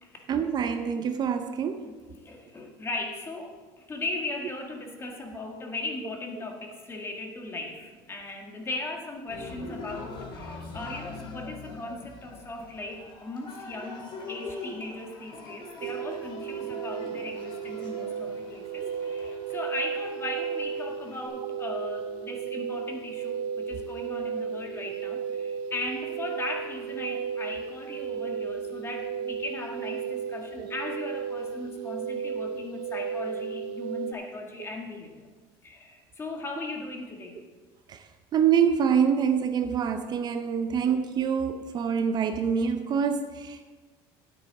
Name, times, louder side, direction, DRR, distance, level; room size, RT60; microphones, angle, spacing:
voice 1, 0.3-1.9 18.8-18.9 30.6-30.7 37.9-38.0 38.3-43.7, right 7 dB, 40° right, 0.6 m, -26 dB
voice 2, 1.8-35.3 35.6-37.4, left 2 dB, 20° left, 1.7 m, -38 dB
Cheering, 9.3-21.3, left 3 dB, 45° left, 2.4 m, -43 dB
sound 1, 15.8-34.1, right 7 dB, 85° right, 0.5 m, -34 dB
9.6 x 8.5 x 4.8 m
cardioid pair, 125°, 11 cm